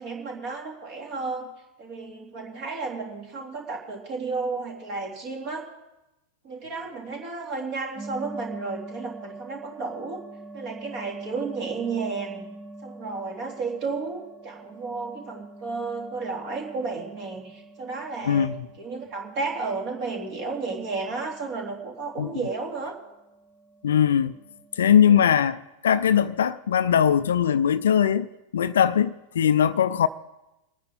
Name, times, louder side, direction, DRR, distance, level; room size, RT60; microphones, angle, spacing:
voice 1, 0.0-1.5 1.8-5.6 6.4-10.2 10.5-12.5 12.8-18.5 18.8-23.0, right 4 dB, 40° right, 3.0 m, -32 dB
sound 1, 7.9-25.2, right 2 dB, 5° right, 2.8 m, -45 dB
voice 2, 18.3-18.7 22.2-22.3 23.8-24.3 24.8-28.3 28.5-30.1, left 8 dB, 65° left, 0.4 m, -20 dB
25.0 x 9.6 x 3.7 m
figure-of-eight pair, 90°, 0 cm